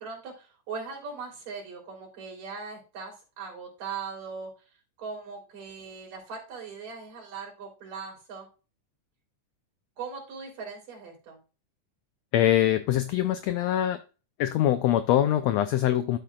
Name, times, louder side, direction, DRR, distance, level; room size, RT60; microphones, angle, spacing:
voice 1, 0.0-4.5 5.0-8.5 10.0-11.4, right 5 dB, 85° right, 0 dB, 5.0 m, -39 dB
voice 2, 12.3-14.0 14.4-16.2, left 12 dB, 90° left, 10 dB, 1.5 m, -23 dB
11.5 x 7.6 x 2.4 m, 0.34 s
omnidirectional pair, 3.7 m